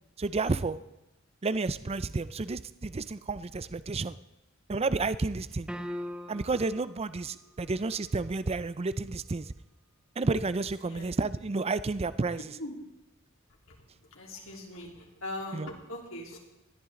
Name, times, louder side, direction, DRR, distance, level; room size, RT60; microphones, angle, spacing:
voice 1, 0.2-0.8 1.4-4.2 4.7-5.7 6.3-9.4 10.2-12.6 15.5-15.7, right 3 dB, 30° right, 15 dB, 0.5 m, -31 dB
sound 1, 5.7-6.7, equal, 5° right, 0.8 m, -38 dB
voice 2, 10.9-11.2 12.6-12.8 14.1-16.4, left 1 dB, 75° left, -1 dB, 3.7 m, -41 dB
20.0 x 13.5 x 3.8 m, 0.97 s
head